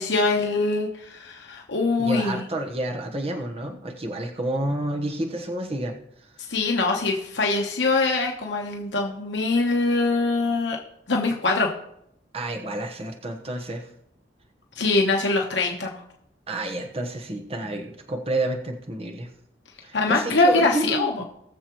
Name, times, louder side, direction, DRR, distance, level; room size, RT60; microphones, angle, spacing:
voice 1, 0.0-2.4 6.5-10.8 11.1-11.7 14.8-16.0 19.9-21.2, left 3 dB, 80° left, 1 dB, 1.1 m, -23 dB
voice 2, 2.0-6.3 12.3-13.9 16.5-19.3 19.8-21.2, right 1 dB, 35° right, 3 dB, 1.2 m, -30 dB
20.0 x 6.9 x 3.1 m, 0.76 s
head